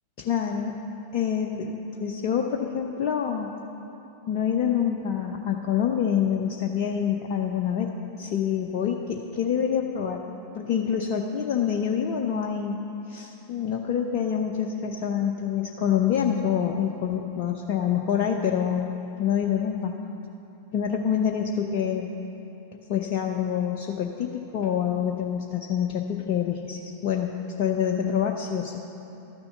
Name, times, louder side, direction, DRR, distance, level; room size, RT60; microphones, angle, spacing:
voice 1, 0.2-0.7 1.1-3.5 4.3-7.9 8.2-10.2 10.5-12.8 13.1-18.9 19.2-20.0 20.7-22.1 22.9-28.8, left 8 dB, 45° left, 3 dB, 0.6 m, -26 dB
12.5 x 7.1 x 6.5 m, 3.0 s
figure-of-eight pair, 90°, 0 cm